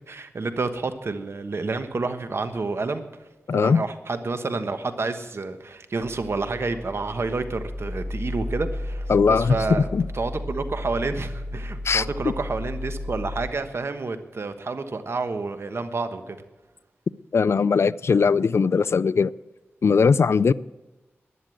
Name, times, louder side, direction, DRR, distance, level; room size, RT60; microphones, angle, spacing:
voice 1, 0.1-3.0 3.5-9.9 10.1-16.4, right 3 dB, 65° right, 9 dB, 1.2 m, -29 dB
voice 2, 3.5-3.8 9.1-10.1 11.8-12.1 17.3-19.3 19.8-20.5, left 5 dB, 70° left, 19 dB, 0.4 m, -20 dB
sound 1, 6.0-13.5, left 1 dB, 45° left, 4.4 m, -33 dB
11.0 x 10.5 x 7.7 m, 1.1 s
wide cardioid pair, 60°, 5 cm